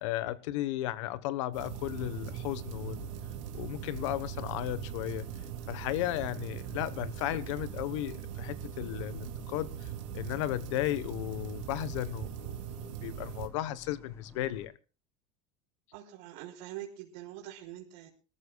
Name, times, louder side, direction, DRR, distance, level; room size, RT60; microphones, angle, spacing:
voice 1, 0.0-3.1 3.5-5.3 5.7-14.7, left 14 dB, 80° left, 1.2 m, -35 dB
sound 1, 1.5-13.5, right 11 dB, 90° right, 2.3 m, -41 dB
sound 2, 1.8-14.7, left 4 dB, 15° left, 8.0 m, -51 dB
voice 2, 15.9-18.1, right 12 dB, 65° right, 3.8 m, -44 dB
25.5 x 13.5 x 2.3 m
cardioid pair, 155°, 16 cm